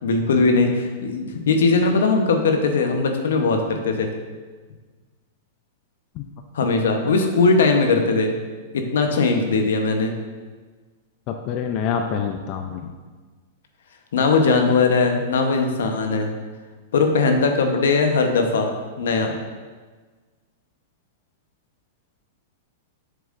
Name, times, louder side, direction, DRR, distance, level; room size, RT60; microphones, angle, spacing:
voice 1, 0.0-4.1 6.5-8.3 8.7-10.1 14.1-16.3 16.9-18.7 19.0-19.3, left 4 dB, 80° left, 4 dB, 1.0 m, -19 dB
voice 2, 11.3-12.9, left 7 dB, 45° left, 5 dB, 0.5 m, -26 dB
7.4 x 6.8 x 2.6 m, 1.4 s
hypercardioid pair, 125°, 0 cm